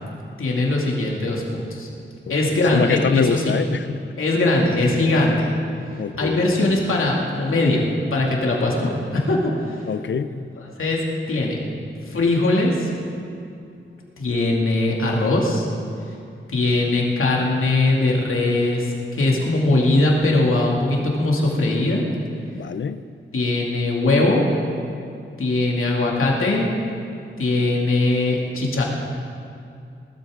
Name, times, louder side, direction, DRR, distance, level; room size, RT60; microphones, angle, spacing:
voice 1, 0.4-1.9 2.3-3.6 4.2-5.5 6.1-7.8 8.1-9.9 10.3-10.4 10.8-11.6 12.0-12.9 14.2-15.7 16.1-16.2 16.5-22.0 23.3-24.4 25.4-26.7 27.4-28.8, left 2 dB, 85° left, -2 dB, 2.6 m, -20 dB
voice 2, 2.3-4.0 6.0-6.4 9.9-10.4 22.5-23.0, left 6 dB, 65° left, 12 dB, 0.6 m, -25 dB
19.0 x 13.5 x 3.8 m, 2.6 s
wide cardioid pair, 95°, 21 cm